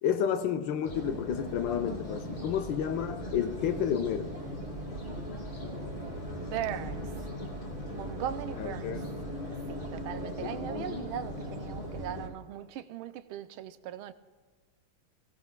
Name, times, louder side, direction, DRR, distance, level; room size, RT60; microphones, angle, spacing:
voice 1, 0.0-4.3 8.6-9.0 10.4-11.0, left 8 dB, 75° left, 1.2 m, -31 dB
sound 1, 0.8-12.3, equal, 20° left, 2.6 m, -38 dB
voice 2, 6.4-7.2 7.9-9.0 9.5-14.1, right 10 dB, 90° right, 1.5 m, -39 dB
23.0 x 16.0 x 2.2 m
omnidirectional pair, 2.3 m